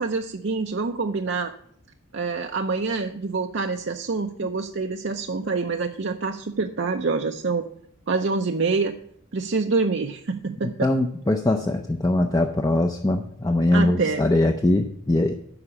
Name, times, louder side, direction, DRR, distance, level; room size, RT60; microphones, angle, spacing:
voice 1, 0.0-1.5 2.1-7.7 8.1-8.9 9.3-10.9 13.7-14.2, right 4 dB, 55° right, 4 dB, 0.5 m, -26 dB
voice 2, 10.8-15.3, left 1 dB, 15° left, 4 dB, 0.5 m, -22 dB
9.7 x 5.9 x 7.1 m, 0.67 s
head